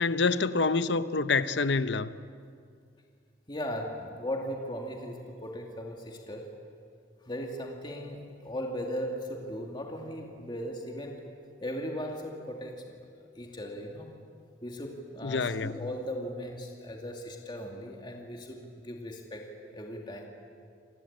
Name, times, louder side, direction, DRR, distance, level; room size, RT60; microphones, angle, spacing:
voice 1, 0.0-2.1 15.2-15.8, left 4 dB, 70° left, 0.8 m, -27 dB
voice 2, 3.5-6.5 7.3-11.2 11.6-13.0 13.4-14.1 14.6-19.5 19.7-20.3, equal, 25° left, 2.5 m, -37 dB
28.5 x 19.5 x 8.8 m
head